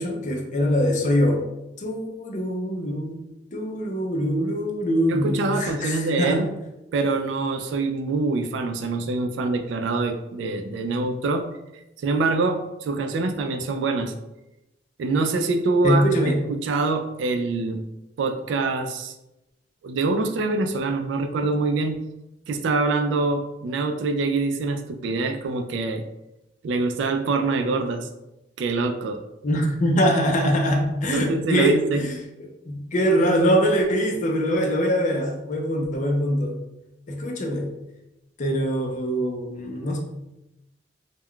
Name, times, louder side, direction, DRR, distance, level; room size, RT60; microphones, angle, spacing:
voice 1, 0.0-1.5 1.8-3.2 3.5-6.5 15.8-16.4 29.4-32.2 32.7-36.6 37.1-37.7 38.4-40.0, equal, 45° left, 2 dB, 0.5 m, -23 dB
voice 2, 5.1-6.5 6.9-11.5 12.0-14.1 15.0-17.8 18.2-19.1 19.8-22.0 22.5-26.0 26.6-28.1 28.6-29.2 31.1-32.1, right 3 dB, 85° right, 6 dB, 0.3 m, -25 dB
2.2 x 2.2 x 3.6 m, 0.93 s
head